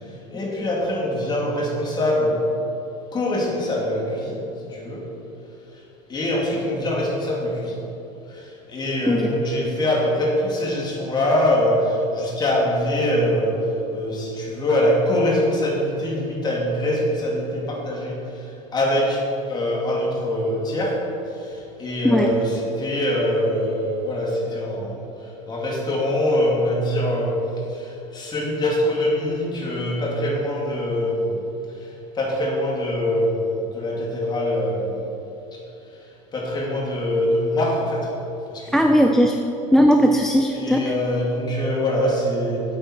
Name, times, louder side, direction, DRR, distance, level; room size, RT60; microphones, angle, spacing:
voice 1, 0.3-2.4 3.1-5.0 6.1-7.8 8.3-13.6 13.9-18.2 18.7-21.0 21.3-25.0 25.5-27.3 27.7-31.4 31.8-31.9 32.1-35.0 36.3-38.1 38.5-38.9 40.5-42.6, left 1 dB, 25° left, -3 dB, 2.6 m, -23 dB
voice 2, 22.0-22.3 38.7-39.4 39.7-40.9, equal, ahead, 4 dB, 0.4 m, -18 dB
9.1 x 7.9 x 5.9 m, 3.0 s
supercardioid pair, 130°, 17 cm